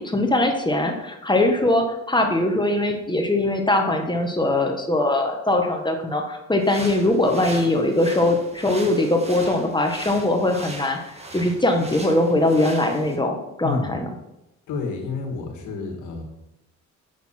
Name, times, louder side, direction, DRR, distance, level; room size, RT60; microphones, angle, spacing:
voice 1, 0.0-11.0 11.3-14.0, left 1 dB, 15° left, 3 dB, 1.1 m, -21 dB
sound 1, 6.6-13.2, right 2 dB, 20° right, 1.4 m, -39 dB
voice 2, 13.6-14.0 14.7-16.2, left 4 dB, 85° left, 2 dB, 1.7 m, -29 dB
6.7 x 6.1 x 4.3 m, 0.89 s
cardioid pair, 90°, 30 cm